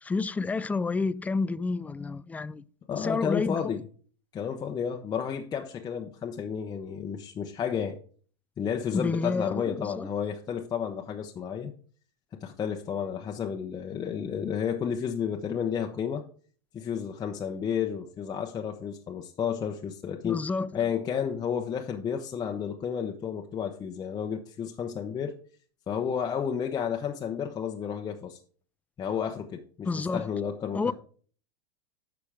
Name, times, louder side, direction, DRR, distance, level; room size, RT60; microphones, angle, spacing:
voice 1, 0.0-2.6 3.0-3.8 8.9-10.1 20.2-20.8 29.8-30.3 30.7-30.9, left 4 dB, 10° left, 0.3 m, -29 dB
voice 2, 2.9-3.8 4.3-8.0 8.6-11.7 12.4-16.2 16.7-20.4 20.7-25.3 25.9-28.4 29.0-30.9, left 7 dB, 25° left, 0.9 m, -31 dB
9.8 x 6.1 x 3.5 m
hypercardioid pair, 100°, 15 cm